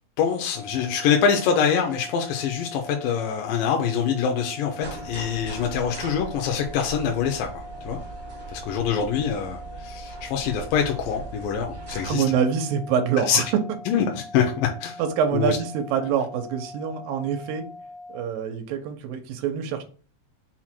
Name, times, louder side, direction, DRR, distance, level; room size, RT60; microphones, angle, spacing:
voice 1, 0.2-8.0 8.5-12.2 13.3-13.4 13.9-15.0 15.3-15.6, left 7 dB, 85° left, 2 dB, 2.2 m, -25 dB
sound 1, 0.5-18.2, left 2 dB, 60° left, 1.0 m, -42 dB
sound 2, 4.8-12.1, right 4 dB, 40° right, 0.6 m, -40 dB
voice 2, 12.0-13.5 15.0-17.7 18.1-19.8, right 7 dB, 85° right, 5 dB, 2.2 m, -25 dB
5.9 x 2.1 x 4.3 m, 0.40 s
omnidirectional pair, 3.9 m